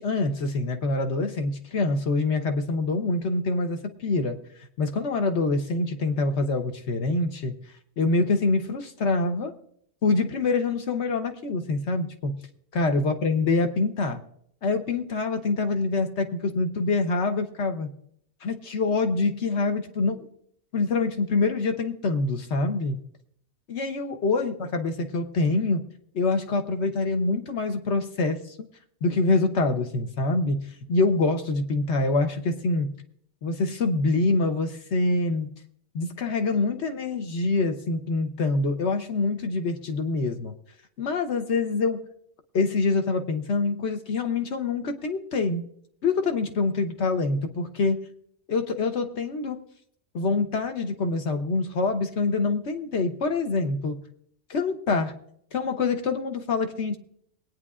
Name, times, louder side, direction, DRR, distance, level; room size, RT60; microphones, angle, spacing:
voice 1, 0.0-4.4 4.8-7.5 8.0-9.5 10.0-12.4 12.7-14.2 14.6-17.9 18.4-20.2 20.7-23.0 23.7-25.8 26.1-28.7 29.0-30.6 30.9-32.9 33.4-35.5 35.9-40.5 41.0-42.0 42.5-45.6 46.0-48.0 48.5-49.6 50.1-54.0 54.5-55.1 55.5-57.0, left 3 dB, 65° left, 6 dB, 1.3 m, -25 dB
21.0 x 9.3 x 2.4 m, 0.66 s
omnidirectional pair, 1.3 m